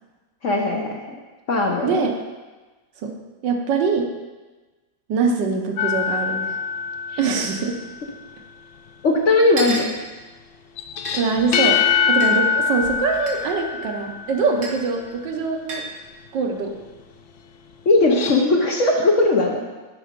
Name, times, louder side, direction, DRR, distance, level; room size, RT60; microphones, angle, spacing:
voice 1, 0.4-0.9 1.5-2.0 9.0-9.9 17.9-19.6, left 2 dB, 50° left, 0 dB, 1.0 m, -18 dB
voice 2, 3.4-4.1 5.1-6.5 7.2-7.8 11.1-11.8 12.1-15.8 16.3-16.8, right 4 dB, 75° right, 3 dB, 1.6 m, -23 dB
sound 1, 5.8-7.8 10.8-14.4 17.9-18.4, left 6 dB, 75° left, 0.7 m, -23 dB
sound 2, 9.6-9.9 11.0-11.2 12.2-12.3 13.3-13.4 14.6-14.8 15.7-15.9, right 2 dB, 40° right, 1.6 m, -30 dB
10.5 x 4.3 x 5.1 m, 1.2 s
omnidirectional pair, 2.0 m